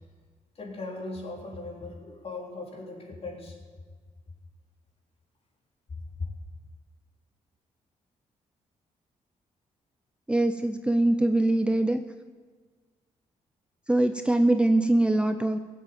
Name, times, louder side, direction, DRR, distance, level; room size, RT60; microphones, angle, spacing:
voice 1, 0.6-3.6 6.2-6.3, left 3 dB, 45° left, 0 dB, 3.6 m, -38 dB
voice 2, 10.3-12.0 13.9-15.6, right 1 dB, 5° right, 8 dB, 0.6 m, -23 dB
17.0 x 7.8 x 8.6 m, 1.5 s
cardioid pair, 90°, 14 cm